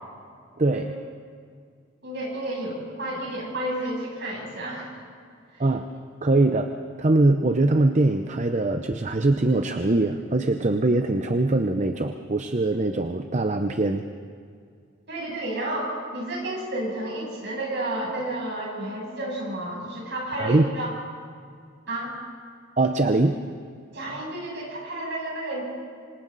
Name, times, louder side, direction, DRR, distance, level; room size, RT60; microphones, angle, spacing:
voice 1, 2.0-5.0 5.5-5.6 15.1-20.9 21.9-22.1 23.9-25.6, right 1 dB, 60° right, -3 dB, 7.7 m, -31 dB
voice 2, 6.2-14.1 20.4-20.7 22.8-23.4, right 2 dB, 40° right, 7 dB, 0.7 m, -22 dB
26.5 x 26.0 x 4.1 m, 2.2 s
head